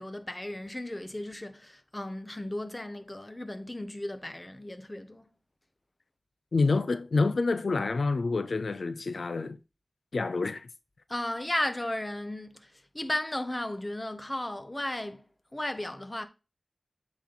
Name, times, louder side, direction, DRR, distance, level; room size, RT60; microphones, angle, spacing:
voice 1, 0.0-5.3 11.1-15.2 15.5-16.2, left 1 dB, 25° left, 1.1 m, -35 dB
voice 2, 6.5-9.6 10.1-10.7, left 3 dB, 90° left, 0.4 m, -27 dB
8.3 x 4.3 x 3.8 m
wide cardioid pair, 45°, 0 cm